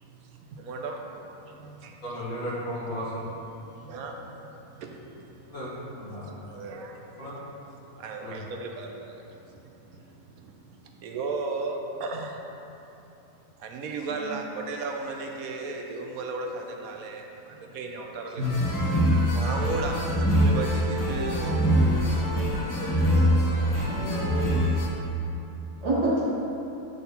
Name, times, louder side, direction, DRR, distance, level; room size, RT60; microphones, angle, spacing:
voice 1, 0.2-1.0 1.5-2.0 3.5-5.5 6.0-7.3 7.9-12.4 13.6-18.4 19.0-21.7, right 3 dB, 75° right, 2 dB, 1.1 m, -36 dB
voice 2, 2.0-3.2 5.5-5.7 6.0-6.3 7.2-7.3 8.2-8.4 23.5-23.9, equal, 80° left, -8 dB, 2.2 m, -35 dB
sound 1, 18.4-24.9, equal, 20° left, 0.6 m, -24 dB
voice 3, 23.8-24.5 25.8-26.3, right 1 dB, 55° right, -8 dB, 2.0 m, -28 dB
8.7 x 4.2 x 4.0 m, 2.9 s
omnidirectional pair, 1.5 m